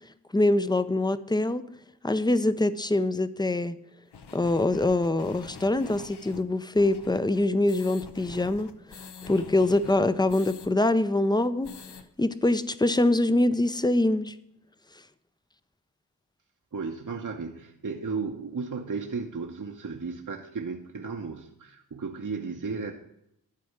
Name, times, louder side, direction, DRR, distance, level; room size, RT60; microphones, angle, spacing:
voice 1, 0.3-1.7 2.0-3.7 4.3-11.7 12.2-14.3, left 2 dB, 10° left, 13 dB, 0.6 m, -24 dB
sound 1, 4.1-10.7 11.0-11.1 11.4-12.0, left 5 dB, 85° left, 0.8 m, -45 dB
voice 2, 16.7-22.9, right 4 dB, 50° right, 3 dB, 0.9 m, -34 dB
11.5 x 4.2 x 6.5 m, 0.78 s
cardioid pair, 45°, 39 cm